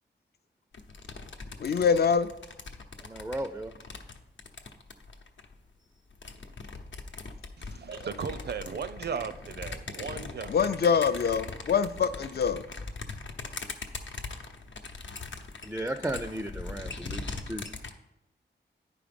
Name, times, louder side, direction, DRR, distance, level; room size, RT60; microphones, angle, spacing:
sound 1, 0.7-5.5 6.1-17.9, left 3 dB, 80° left, 0.8 m, -41 dB
voice 1, 1.6-2.3 10.5-12.7, left 6 dB, 55° left, 13 dB, 0.5 m, -25 dB
voice 2, 3.0-3.7 15.6-17.6, right 1 dB, 5° right, 8 dB, 0.4 m, -35 dB
voice 3, 7.6-10.5, right 6 dB, 60° right, 12 dB, 0.5 m, -36 dB
10.0 x 5.0 x 5.2 m, 0.95 s
wide cardioid pair, 140°, 19 cm